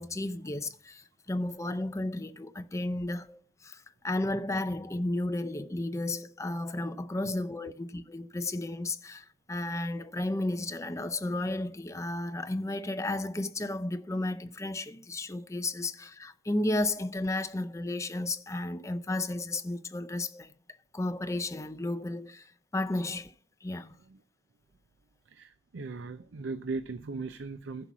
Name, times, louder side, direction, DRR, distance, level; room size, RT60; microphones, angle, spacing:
voice 1, 0.0-20.5 20.9-23.3 23.6-23.9, left 2 dB, 15° left, 0.5 m, -33 dB
voice 2, 25.3-27.9, right 3 dB, 80° right, 0.5 m, -38 dB
11.0 x 5.8 x 6.0 m
head